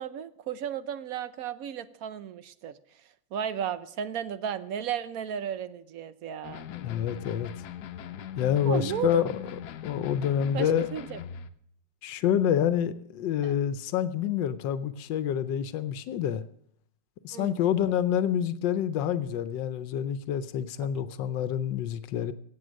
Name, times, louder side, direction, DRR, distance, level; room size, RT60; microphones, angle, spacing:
voice 1, 0.0-6.6 8.6-9.2 10.5-11.2 13.4-13.5 17.3-17.6, right 9 dB, 65° right, 15 dB, 1.0 m, -34 dB
sound 1, 6.4-11.5, left 8 dB, 70° left, 1.2 m, -41 dB
voice 2, 6.7-7.5 8.4-9.2 9.8-10.9 12.0-16.4 17.2-22.3, left 9 dB, 90° left, 14 dB, 1.4 m, -27 dB
17.0 x 7.7 x 6.3 m, 0.69 s
omnidirectional pair, 1.9 m